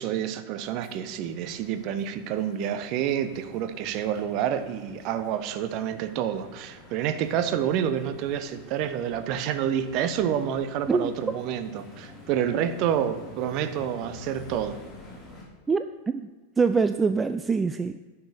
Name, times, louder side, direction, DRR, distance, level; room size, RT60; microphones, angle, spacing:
voice 1, 0.0-14.8, right 9 dB, 40° right, 11 dB, 0.7 m, -28 dB
sound 1, 0.6-15.4, left 2 dB, 15° left, 3.4 m, -48 dB
voice 2, 15.7-16.3 16.6-18.0, right 4 dB, 15° right, 10 dB, 0.3 m, -24 dB
10.0 x 5.7 x 6.6 m, 1.3 s
figure-of-eight pair, 90°, 0 cm